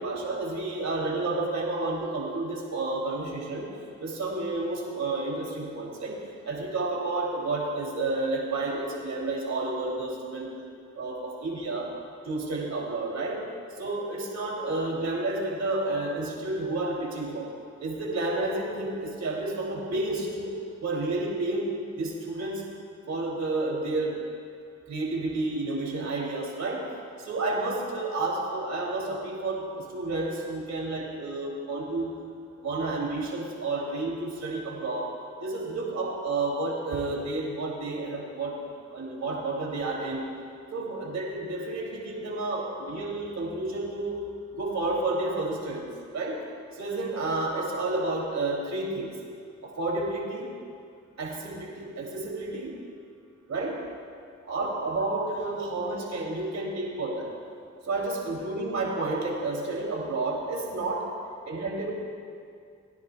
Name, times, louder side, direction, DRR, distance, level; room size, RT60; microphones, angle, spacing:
voice 1, 0.0-3.7 4.0-6.2 6.4-10.6 11.0-11.9 12.2-13.4 13.7-17.5 17.8-20.5 20.8-22.6 23.1-24.2 24.9-26.9 27.2-32.1 32.6-35.1 35.4-38.6 38.9-40.3 40.7-44.2 44.5-46.4 46.7-49.1 49.6-50.5 51.2-52.7 53.5-53.8 54.4-57.3 57.8-61.0 61.5-61.9, right 2 dB, 75° right, -2 dB, 2.8 m, -30 dB
21.0 x 10.5 x 2.3 m, 2.3 s
supercardioid pair, 40°, 29 cm